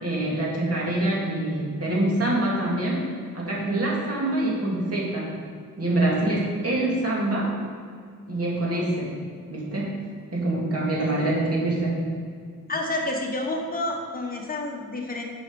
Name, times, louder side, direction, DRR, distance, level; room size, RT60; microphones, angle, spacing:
voice 1, 0.0-3.0 3.3-5.3 5.8-7.5 8.3-9.1 9.5-9.9 10.3-12.0, right 1 dB, 45° right, -4 dB, 2.4 m, -25 dB
voice 2, 11.0-11.3 12.7-15.2, left 2 dB, 25° left, 0 dB, 1.3 m, -29 dB
7.5 x 6.4 x 5.5 m, 2.2 s
wide cardioid pair, 175°, 34 cm